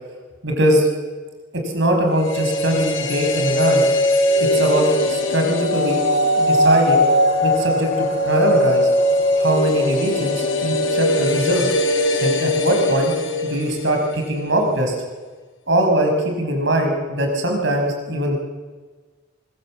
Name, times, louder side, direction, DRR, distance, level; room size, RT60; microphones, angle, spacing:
voice 1, 0.4-0.9 1.6-3.8 4.5-6.0 6.3-7.0 7.4-8.9 9.4-11.7 12.2-13.1 13.4-15.0 15.7-18.4, right 1 dB, 65° right, 3 dB, 5.6 m, -21 dB
sound 1, 2.1-14.2 14.5-14.6, left 1 dB, 75° left, 5.1 m, -20 dB
24.0 x 21.5 x 7.5 m, 1.4 s
head